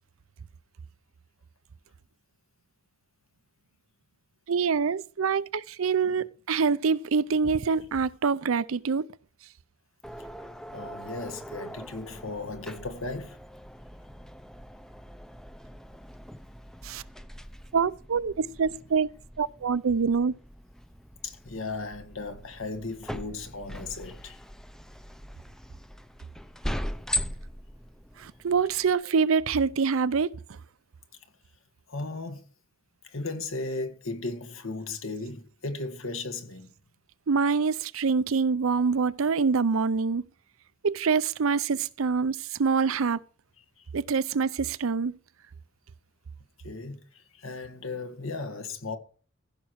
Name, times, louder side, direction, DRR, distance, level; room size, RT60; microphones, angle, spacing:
voice 1, 4.5-9.1 16.8-17.0 17.7-19.1 19.4-20.3 28.2-30.4 37.3-40.2 40.8-43.2 43.9-45.1, right 5 dB, 80° right, 0.5 m, -25 dB
sound 1, 10.0-28.9, equal, 5° left, 0.5 m, -40 dB
voice 2, 10.7-13.4 21.2-24.4 31.9-32.4 33.1-36.7 43.8-43.9 46.6-49.0, left 3 dB, 75° left, 1.7 m, -36 dB
15.5 x 6.0 x 4.7 m
head